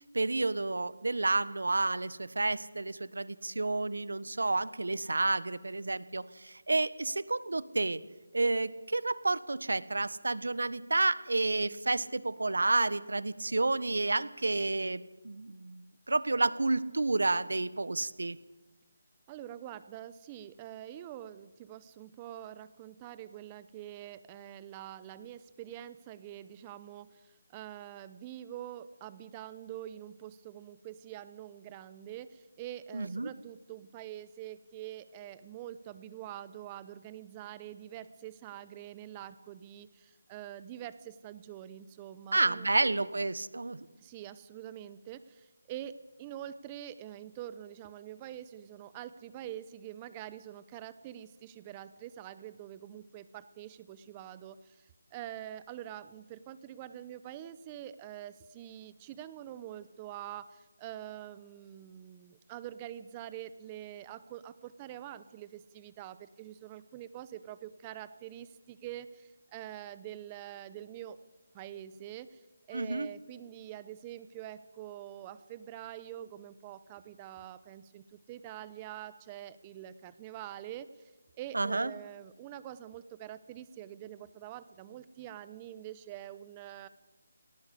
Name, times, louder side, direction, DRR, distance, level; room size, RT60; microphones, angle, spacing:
voice 1, 0.1-8.0 8.3-18.4 32.9-33.3 42.3-43.9 72.7-73.1 81.5-81.9, right 2 dB, 80° right, 17 dB, 1.2 m, -30 dB
voice 2, 19.3-43.1 44.0-71.2 71.5-72.4 72.7-80.9 81.4-86.9, right 12 dB, 20° right, 15 dB, 0.8 m, -45 dB
18.5 x 17.5 x 8.3 m, 1.1 s
figure-of-eight pair, 160°, 0 cm